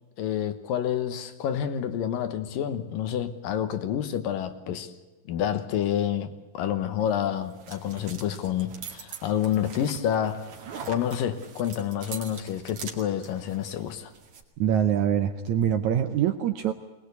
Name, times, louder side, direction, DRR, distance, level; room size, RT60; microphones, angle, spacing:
voice 1, 0.2-4.9 5.3-10.5 10.9-14.1, left 9 dB, 70° left, 2.8 m, -28 dB
sound 1, 7.0-14.4, right 6 dB, 55° right, 3.3 m, -43 dB
voice 2, 14.6-16.7, right 9 dB, 75° right, 1.8 m, -24 dB
22.5 x 19.5 x 8.3 m
omnidirectional pair, 4.2 m